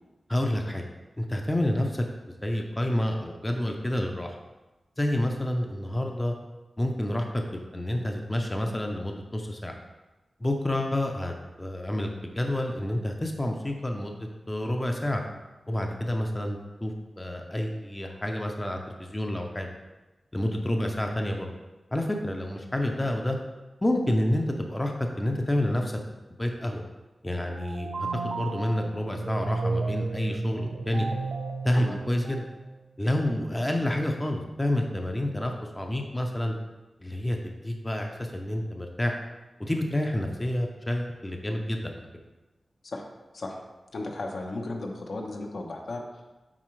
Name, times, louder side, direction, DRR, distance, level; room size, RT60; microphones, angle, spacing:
voice 1, 0.3-0.8 1.2-2.0 2.4-4.4 5.0-6.3 6.8-7.3 7.5-9.7 10.4-15.2 15.7-19.7 20.3-21.5 21.9-23.4 23.8-26.0 26.4-26.8 27.2-31.1 31.6-32.5 33.0-36.5 37.0-39.2 39.6-42.1, left 1 dB, 15° left, 2 dB, 0.6 m, -29 dB
sound 1, 27.5-33.0, right 3 dB, 85° right, 0.5 m, -33 dB
voice 2, 43.9-46.0, left 2 dB, 70° left, 1 dB, 0.8 m, -35 dB
7.5 x 4.7 x 3.2 m, 1.1 s
wide cardioid pair, 115°, 0 cm